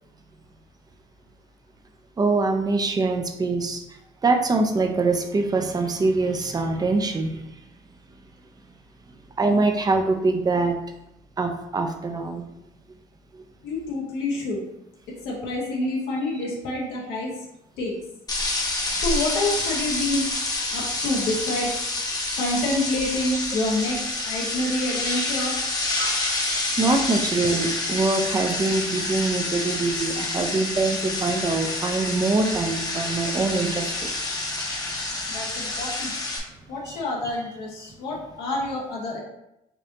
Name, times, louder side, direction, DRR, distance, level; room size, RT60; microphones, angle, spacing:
voice 1, 2.2-3.8 4.2-7.4 9.4-10.8 11.4-12.5 26.0-26.3 26.8-34.3 35.3-35.4 36.9-37.0, right 3 dB, 20° right, 5 dB, 0.5 m, -24 dB
voice 2, 13.6-14.6 15.1-17.4 17.8-17.9 18.9-20.2 20.7-21.7 22.4-25.5 35.3-36.1 36.7-39.2, left 2 dB, 90° left, -3 dB, 1.5 m, -27 dB
sound 1, 18.3-36.4, left 2 dB, 20° left, 0.9 m, -28 dB
5.2 x 2.7 x 2.8 m, 0.84 s
cardioid pair, 110°, 17 cm